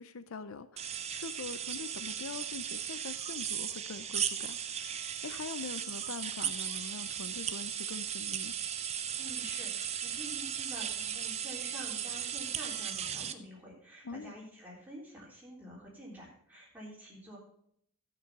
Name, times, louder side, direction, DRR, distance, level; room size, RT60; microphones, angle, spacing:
voice 1, 0.0-8.5 14.0-14.3, left 4 dB, 65° left, 13 dB, 0.6 m, -44 dB
sound 1, 0.8-13.3, right 9 dB, 30° right, 0.6 m, -36 dB
voice 2, 9.2-17.4, equal, 5° right, -5 dB, 3.7 m, -48 dB
13.0 x 6.2 x 5.9 m, 0.67 s
head